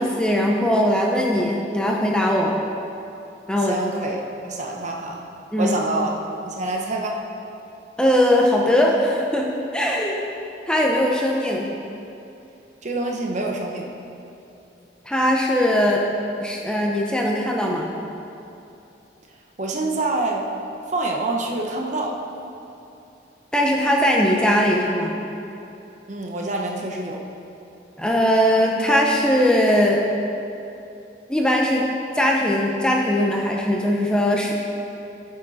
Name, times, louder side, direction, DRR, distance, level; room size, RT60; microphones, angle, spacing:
voice 1, 0.0-2.6 3.5-3.8 5.5-5.8 8.0-10.2 10.7-11.7 15.1-16.0 16.4-17.9 23.5-25.2 28.0-30.0 31.3-31.9 32.1-34.5, equal, 5° left, -1 dB, 0.7 m, -20 dB
voice 2, 3.6-5.2 5.6-6.2 6.4-7.2 12.8-13.9 19.6-20.5 20.9-22.2 26.1-27.2, right 2 dB, 40° right, 0 dB, 1.0 m, -26 dB
15.0 x 6.8 x 4.2 m, 2.8 s
head